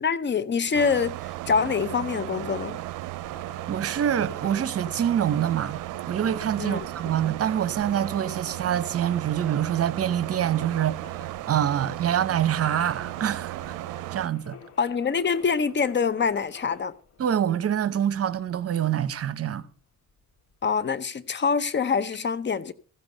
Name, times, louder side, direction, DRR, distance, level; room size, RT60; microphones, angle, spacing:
voice 1, 0.0-2.8 6.6-6.8 14.8-16.9 20.6-22.7, left 5 dB, 35° left, 0.8 m, -25 dB
sound 1, 0.7-14.3, right 18 dB, 85° right, 0.5 m, -35 dB
sound 2, 1.4-20.9, left 6 dB, 55° left, 1.9 m, -50 dB
voice 2, 3.7-5.8 6.1-11.0 11.5-13.8 14.1-14.6 17.2-19.7, right 10 dB, 50° right, 1.0 m, -25 dB
15.0 x 7.1 x 6.5 m
cardioid pair, 90°, 30 cm